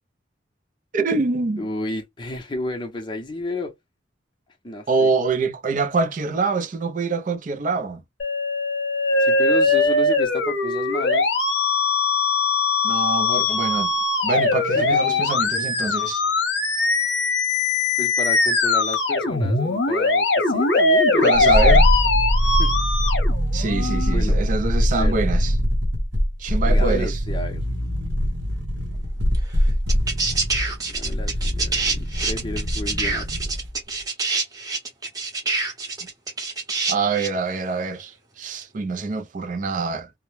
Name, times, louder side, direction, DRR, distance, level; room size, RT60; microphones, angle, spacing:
voice 1, 0.9-1.6 4.9-8.0 12.8-13.9 14.2-16.2 21.2-21.9 23.5-25.5 26.4-27.2 36.9-40.1, right 4 dB, 45° right, 0.4 m, -25 dB
voice 2, 1.6-3.7 4.6-5.1 9.2-11.3 14.7-15.5 18.0-21.5 22.4-22.8 24.1-24.4 24.9-25.2 26.7-27.6 30.9-33.5, left 2 dB, 25° left, 0.6 m, -31 dB
Musical instrument, 8.2-24.1, left 3 dB, 65° left, 0.7 m, -21 dB
sound 1, 21.3-33.7 34.0-34.1, equal, 80° right, 0.8 m, -22 dB
sound 2, 29.3-29.4 29.9-37.4 38.6-38.7, right 3 dB, 20° right, 0.8 m, -26 dB
2.1 x 2.0 x 3.0 m
head